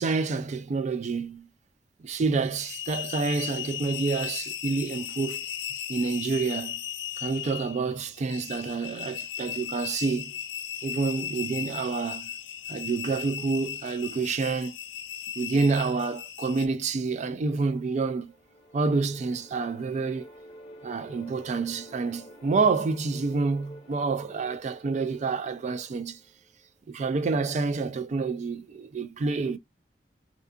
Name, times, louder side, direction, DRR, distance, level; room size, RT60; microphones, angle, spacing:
voice 1, 0.0-1.5 2.0-5.4 5.9-6.8 7.2-10.4 10.8-12.3 12.7-14.7 15.4-18.3 18.7-20.3 20.8-26.2 26.9-29.6, right 4 dB, 40° right, 0.3 m, -28 dB
sound 1, 2.4-16.7, left 10 dB, 90° left, 0.4 m, -37 dB
sound 2, 17.8-26.8, equal, 30° left, 0.8 m, -50 dB
2.7 x 2.3 x 2.4 m
head